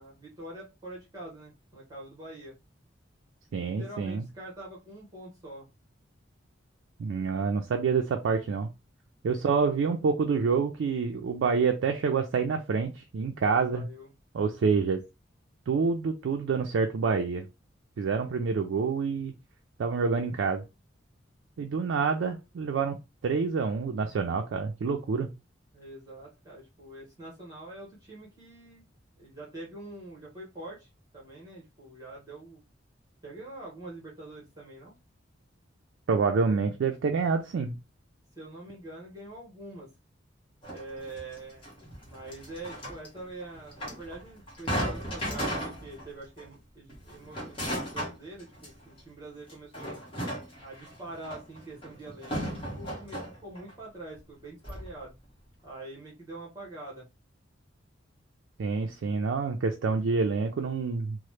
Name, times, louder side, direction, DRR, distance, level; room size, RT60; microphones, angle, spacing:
voice 1, 0.0-2.5 3.6-5.7 9.3-9.9 13.7-14.1 25.7-28.8 29.2-32.6 33.2-34.9 38.4-39.9 40.7-41.7 42.0-50.0 50.6-55.1 55.6-57.1, right 2 dB, 20° right, -5 dB, 0.9 m, -45 dB
voice 2, 3.5-4.2 7.0-8.7 9.2-13.9 14.3-15.0 15.7-17.5 18.0-19.3 19.8-20.6 21.6-23.0 23.2-25.3 36.1-37.8 58.6-61.2, right 5 dB, 70° right, 4 dB, 0.3 m, -27 dB
sound 1, 40.6-46.1 46.4-46.5 46.9-49.0 49.5-53.7 54.2-54.3 54.6-54.9, equal, 30° left, 1.0 m, -36 dB
2.9 x 2.0 x 3.0 m, 0.26 s
head